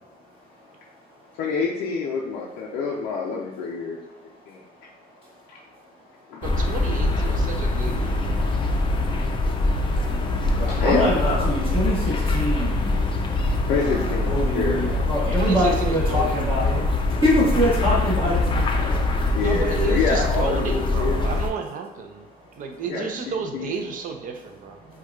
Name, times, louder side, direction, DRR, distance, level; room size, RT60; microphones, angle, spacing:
voice 1, 0.0-1.4 4.1-6.4 8.4-8.6 8.8-13.4 13.6-19.3 22.2-22.8 24.7-25.0, equal, 30° right, -7 dB, 1.1 m, -28 dB
voice 2, 1.4-4.0 4.5-4.6 6.3-6.4 7.7-7.9 10.2-11.6 13.7-14.9 19.3-21.2 22.8-23.7, left 5 dB, 90° left, -3 dB, 0.5 m, -27 dB
sound 1, 6.4-21.5, left 2 dB, 30° left, 0.4 m, -23 dB
voice 3, 6.4-8.5 15.4-16.7 19.4-22.3 22.6-24.8, right 5 dB, 50° right, 5 dB, 0.5 m, -32 dB
4.4 x 2.3 x 2.3 m, 0.88 s
cardioid pair, 110°, 17 cm